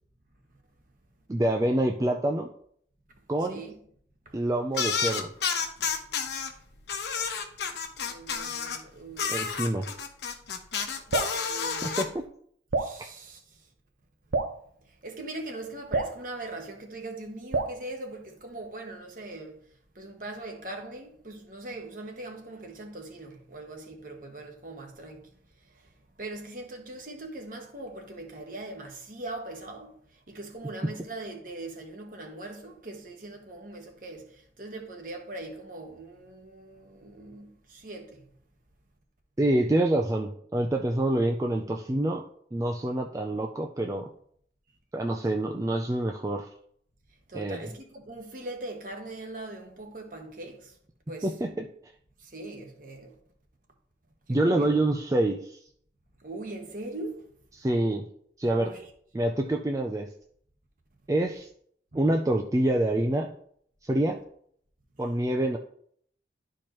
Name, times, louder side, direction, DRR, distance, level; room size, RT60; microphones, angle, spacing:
voice 1, 1.3-2.5 3.3-3.6 4.3-5.3 9.3-9.9 11.8-12.2 39.4-42.3 42.5-44.1 44.9-46.5 47.3-47.7 51.2-51.7 54.3-55.6 57.6-58.0 58.4-58.7 59.1-60.1 61.1-61.5 61.9-63.3 63.8-64.2 65.0-65.6, right 1 dB, 20° right, 0.4 m, -26 dB
sound 1, 4.7-6.5 6.9-8.8 9.2-12.0, left 6 dB, 70° left, 1.0 m, -30 dB
voice 2, 8.0-9.4 11.1-12.0 12.8-13.6 14.8-19.6 19.9-25.3 25.7-25.9 26.2-38.3 47.3-50.7 51.1-51.3 52.2-53.2 54.3-54.8 56.2-57.3 58.5-58.9 61.9-62.0, right 2 dB, 50° right, 1.3 m, -41 dB
Drip, 11.1-11.4 12.7-13.0 14.3-14.6 15.9-16.2 17.5-17.8, right 3 dB, 80° right, 0.6 m, -28 dB
12.0 x 4.5 x 3.0 m
head